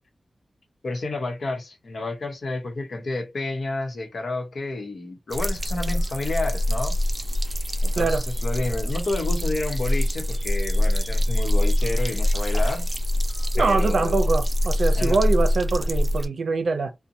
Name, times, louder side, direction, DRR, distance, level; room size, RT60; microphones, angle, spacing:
voice 1, 0.8-7.0 7.8-12.9 13.6-14.2 14.9-15.2, left 2 dB, 70° left, 0.9 m, -30 dB
sound 1, 5.3-16.3, left 1 dB, 25° right, 0.6 m, -24 dB
voice 2, 13.5-16.9, right 4 dB, 75° right, 0.5 m, -24 dB
2.5 x 2.1 x 2.7 m
cardioid pair, 55°, 0 cm